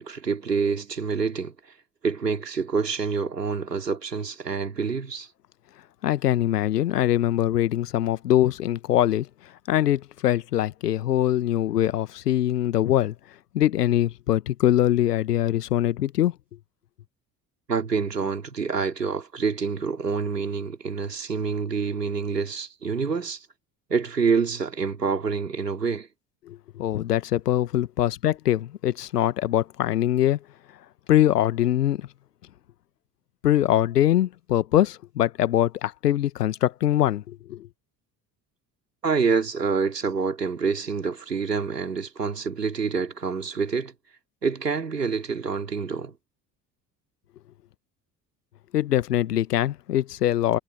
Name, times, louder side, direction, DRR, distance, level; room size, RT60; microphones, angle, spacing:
voice 1, 0.0-1.5 2.0-5.3 17.7-23.5 23.9-26.1 39.0-43.9 44.4-46.1, right 5 dB, 85° right, 3.5 m, -27 dB
voice 2, 6.0-9.3 9.7-13.1 13.5-16.3 26.5-30.4 31.1-32.1 33.4-37.7 48.7-50.6, left 12 dB, 80° left, 1.3 m, -23 dB
figure-of-eight pair, 55°, 47 cm